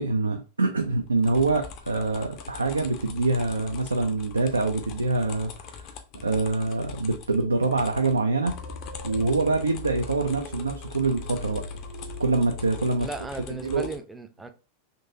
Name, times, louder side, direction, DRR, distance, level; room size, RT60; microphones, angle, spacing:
voice 1, 0.0-5.9 6.1-8.5 9.0-11.6 12.2-13.1 13.6-13.9, right 3 dB, 80° right, 0.4 m, -25 dB
sound 1, 0.9-14.0, left 6 dB, 40° left, 0.6 m, -43 dB
sound 2, 8.5-13.5, left 2 dB, 55° right, 1.0 m, -41 dB
voice 2, 13.0-14.5, right 3 dB, 10° right, 0.5 m, -36 dB
3.8 x 2.6 x 2.6 m
figure-of-eight pair, 90°, 0 cm